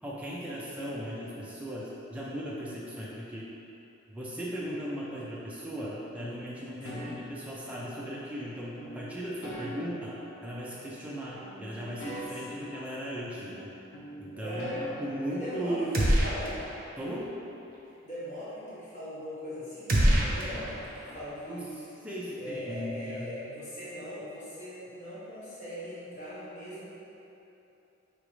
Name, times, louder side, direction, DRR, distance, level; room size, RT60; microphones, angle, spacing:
voice 1, 0.0-3.5 4.1-13.7 14.2-14.7 15.0-16.0 17.0-17.3 21.5-21.6 22.0-23.4, equal, 5° right, -7 dB, 0.4 m, -37 dB
sound 1, 6.2-8.2 8.8-11.1 11.3-13.7 13.9-16.0, equal, 70° left, 0.7 m, -44 dB
voice 2, 6.8-7.1 12.3-12.6 14.3-14.8 15.3-16.6 18.0-21.7 22.3-26.9, equal, 40° left, -11 dB, 1.0 m, -40 dB
sound 2, 15.9-16.8 17.1-17.2 19.9-21.2, equal, 50° right, 0.6 m, -26 dB
4.9 x 2.9 x 3.1 m, 2.9 s
head